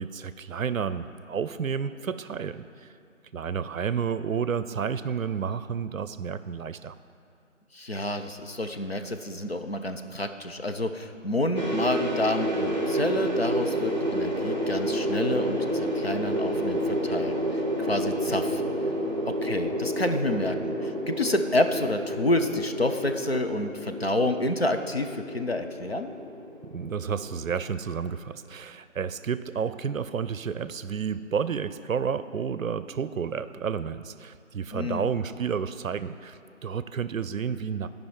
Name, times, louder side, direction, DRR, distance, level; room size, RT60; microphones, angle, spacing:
voice 1, 0.0-2.9 3.3-6.9 26.7-37.9, right 6 dB, 90° right, 14 dB, 0.5 m, -31 dB
voice 2, 7.7-18.6 19.3-26.1 34.7-35.1, left 1 dB, 50° left, 6 dB, 0.5 m, -29 dB
sound 1, 11.6-27.7, equal, 35° right, 0.7 m, -30 dB
12.0 x 5.3 x 4.6 m, 2.4 s
figure-of-eight pair, 175°, 39 cm